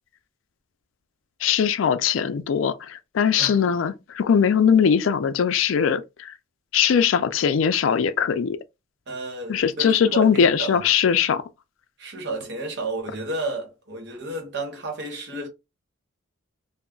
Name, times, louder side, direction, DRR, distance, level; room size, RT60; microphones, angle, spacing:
voice 1, 1.4-6.3 6.7-8.6 9.5-11.4, left 7 dB, 75° left, 0.4 m, -20 dB
voice 2, 9.1-10.9 12.0-15.5, right 2 dB, 60° right, 0.9 m, -32 dB
2.3 x 2.0 x 3.7 m
head